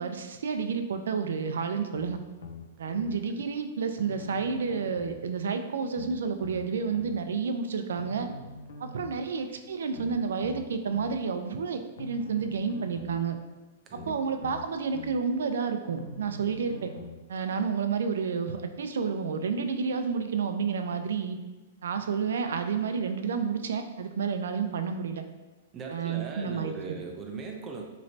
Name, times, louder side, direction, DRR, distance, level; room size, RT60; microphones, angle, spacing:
voice 1, 0.0-2.2 2.8-8.3 8.8-13.4 14.1-16.9 17.3-21.4 21.8-25.2 25.9-27.0, right 5 dB, 90° right, 7 dB, 0.3 m, -30 dB
sound 1, 2.0-3.2 4.0-5.2 5.9-7.2 8.0-9.2 9.9-11.2 12.0-13.2 13.9-15.2 16.0-17.2 17.9-18.0, left 4 dB, 80° left, 0.4 m, -44 dB
voice 2, 13.8-14.2 25.7-27.8, right 4 dB, 15° right, 1 dB, 0.3 m, -39 dB
3.1 x 3.0 x 2.6 m, 1.2 s
hypercardioid pair, 175°, 0 cm